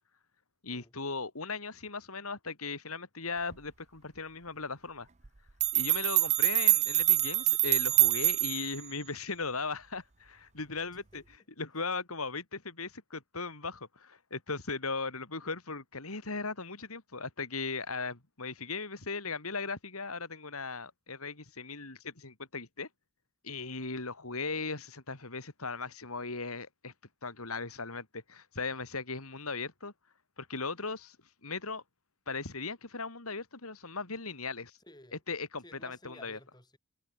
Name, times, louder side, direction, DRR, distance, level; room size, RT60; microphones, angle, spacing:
voice 1, 0.6-5.1 5.7-11.2 11.6-22.9 23.4-26.9 27.2-29.9 30.4-31.2 31.4-31.8 32.3-34.8 35.3-36.4, left 4 dB, 85° left, 3.4 m, -38 dB
sound 1, 5.2-5.3 5.6-8.8, right 14 dB, 30° right, 0.7 m, -25 dB
voice 2, 10.9-11.3 34.8-35.2 35.6-36.8, left 1 dB, 20° left, 7.2 m, -55 dB
head